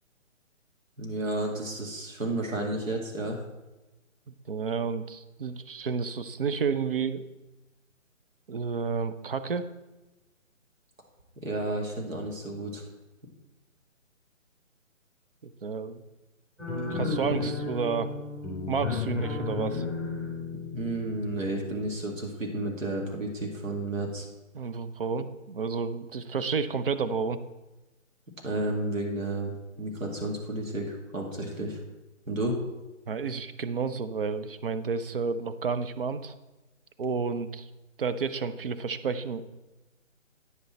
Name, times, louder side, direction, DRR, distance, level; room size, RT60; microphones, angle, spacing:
voice 1, 1.0-3.4 11.4-12.8 20.7-24.3 28.4-31.8 32.3-32.6, right 1 dB, 80° right, 0 dB, 2.1 m, -32 dB
voice 2, 4.5-7.2 8.5-9.7 15.4-16.0 16.9-18.1 18.7-19.8 24.5-27.4 33.1-36.3 37.0-37.7 38.0-39.4, right 5 dB, 45° right, 11 dB, 0.5 m, -31 dB
sound 1, 16.6-21.9, left 3 dB, ahead, 2.6 m, -33 dB
9.4 x 6.2 x 4.2 m, 1.1 s
figure-of-eight pair, 145°, 39 cm